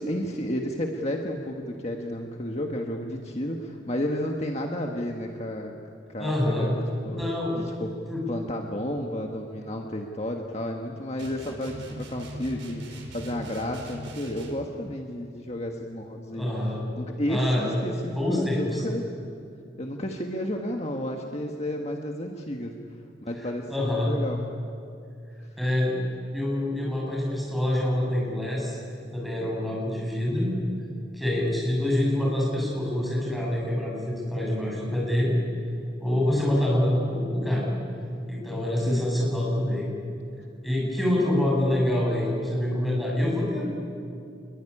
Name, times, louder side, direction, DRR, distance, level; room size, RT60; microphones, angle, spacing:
voice 1, 0.0-5.7 6.1-7.2 7.5-7.9 8.3-16.5 17.0-19.1 19.8-22.7 23.2-24.4 38.9-39.1 40.8-41.3, left 1 dB, 35° left, 2 dB, 1.5 m, -32 dB
voice 2, 6.2-6.7 7.1-7.5 8.1-8.2 16.3-16.8 17.3-17.7 18.1-18.8 23.7-24.1 25.6-28.8 29.1-30.5 31.1-35.3 36.0-37.7 38.3-39.9 40.6-43.7, left 1 dB, ahead, -4 dB, 7.7 m, -26 dB
sound 1, 11.2-14.7, equal, 90° right, 4.8 m, -40 dB
26.5 x 22.5 x 10.0 m, 2.6 s
head